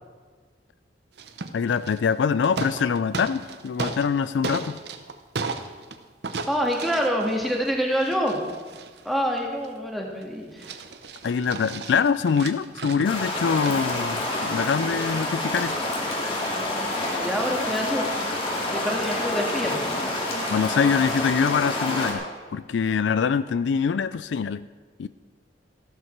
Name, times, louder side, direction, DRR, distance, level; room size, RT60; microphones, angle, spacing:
sound 1, 1.2-2.1 2.4-4.1 4.4-6.0 6.2-9.8 10.2-10.3 10.6-13.7, right 4 dB, 65° right, 0.8 m, -35 dB
voice 1, 1.5-4.8 11.2-15.8 20.5-24.7 25.0-25.1, left 6 dB, 80° left, 15 dB, 0.4 m, -24 dB
voice 2, 6.5-8.4 9.0-10.8 16.5-18.1 18.7-19.8, equal, ahead, -1 dB, 1.9 m, -27 dB
sound 2, 13.0-22.1, left 1 dB, 30° left, 2.5 m, -28 dB
15.0 x 12.5 x 4.6 m, 1.5 s
head